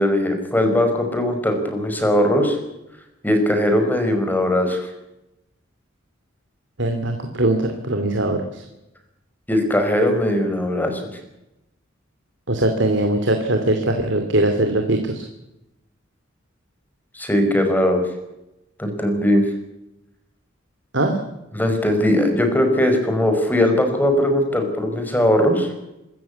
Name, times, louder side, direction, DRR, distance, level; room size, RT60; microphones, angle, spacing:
voice 1, 0.0-2.6 3.2-4.9 9.5-11.0 17.1-18.0 18.8-19.4 21.5-25.7, left 1 dB, 10° left, 5 dB, 5.0 m, -19 dB
voice 2, 6.8-8.6 12.5-15.2 20.9-21.2, right 1 dB, 65° right, 5 dB, 2.7 m, -21 dB
26.0 x 14.0 x 8.4 m, 0.91 s
head